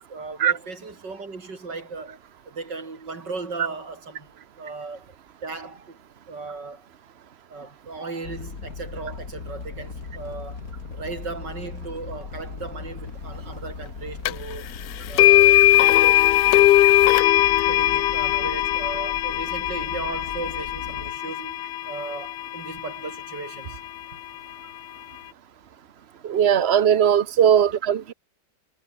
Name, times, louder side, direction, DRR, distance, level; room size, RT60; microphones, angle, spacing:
voice 1, 0.1-2.2 2.4-5.2 5.4-6.0 6.3-6.8 7.5-10.6 10.9-14.7 15.1-15.7 17.7-23.8 26.5-26.8, right 3 dB, 80° right, 4.7 m, -36 dB
sound 1, 8.2-21.1, left 4 dB, 55° left, 2.9 m, -38 dB
sound 2, 14.3-14.4 15.2-23.2, left 14 dB, 80° left, 1.4 m, -19 dB
voice 2, 26.2-28.1, right 9 dB, 45° right, 1.1 m, -19 dB
omnidirectional pair, 1.9 m